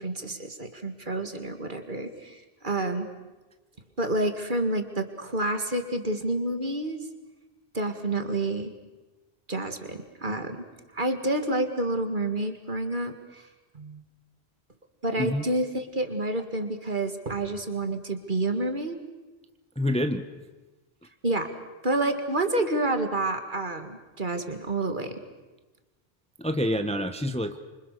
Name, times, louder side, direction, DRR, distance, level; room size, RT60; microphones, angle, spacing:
voice 1, 0.0-3.1 4.0-7.0 7.7-8.7 9.5-10.6 10.9-13.4 13.7-14.0 15.0-19.0 21.2-21.5 21.8-25.2, right 2 dB, 50° right, 7 dB, 2.2 m, -29 dB
voice 2, 19.8-20.3 26.4-27.6, left 1 dB, 5° left, 8 dB, 1.0 m, -27 dB
26.5 x 25.5 x 6.8 m, 1.2 s
omnidirectional pair, 1.1 m